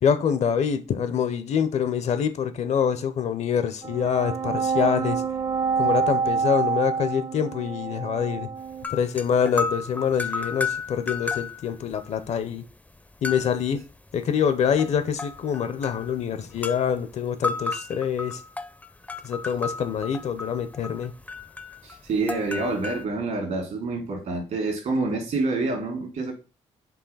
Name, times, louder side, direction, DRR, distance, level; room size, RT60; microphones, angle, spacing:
voice 1, 0.0-5.2 5.8-8.5 8.9-12.6 13.2-13.8 14.1-18.4 19.2-21.1, left 7 dB, 60° left, 0.6 m, -25 dB
sound 1, 3.8-8.9, right 5 dB, 40° right, 0.6 m, -27 dB
sound 2, 8.7-12.1 12.4-12.5 13.2-13.7 14.7-16.1 16.6-16.9 17.4-23.0, left 4 dB, 10° left, 0.4 m, -33 dB
voice 2, 21.8-26.3, right 3 dB, 65° right, 1.6 m, -27 dB
4.8 x 2.8 x 3.9 m
cardioid pair, 75°, 13 cm